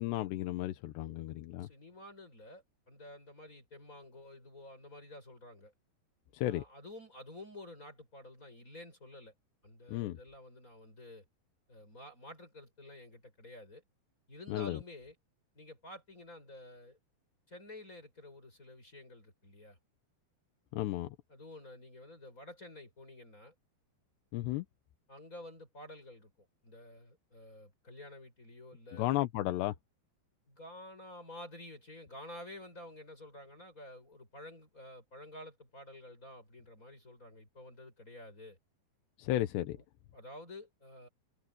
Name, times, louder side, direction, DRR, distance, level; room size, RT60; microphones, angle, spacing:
voice 1, 0.0-1.7 6.3-6.6 9.9-10.2 14.5-14.8 20.7-21.2 24.3-24.7 28.9-29.8 39.2-39.8, left 15 dB, 85° left, 3.2 m, -34 dB
voice 2, 1.6-5.7 6.4-9.3 9.6-11.2 11.7-13.8 14.3-15.1 15.5-17.0 17.5-19.8 21.3-23.5 25.1-29.1 30.5-38.6 39.8-39.9 40.1-41.1, left 1 dB, 20° left, 6.6 m, -51 dB
open air
omnidirectional pair, 4.9 m